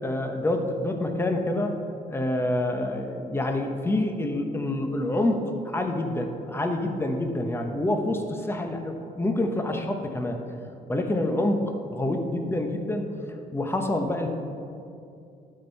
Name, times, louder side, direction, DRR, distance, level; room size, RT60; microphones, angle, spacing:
voice 1, 0.0-1.8 2.1-10.4 10.9-13.1 13.5-14.3, left 1 dB, 15° left, 4 dB, 1.0 m, -27 dB
11.5 x 4.6 x 5.4 m, 2.6 s
cardioid pair, 80°, 17 cm